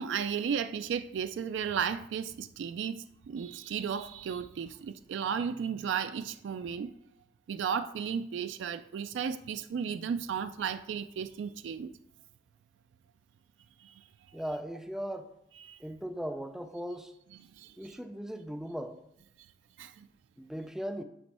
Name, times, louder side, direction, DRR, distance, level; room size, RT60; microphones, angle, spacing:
voice 1, 0.0-6.9 7.5-11.9 13.8-14.0 15.6-15.8 17.5-17.8 19.8-20.1, right 7 dB, 85° right, 11 dB, 0.3 m, -34 dB
voice 2, 14.3-15.3 15.8-17.1 17.8-19.0 20.4-21.0, equal, 5° right, 7 dB, 0.4 m, -38 dB
8.3 x 3.4 x 4.2 m, 0.77 s
head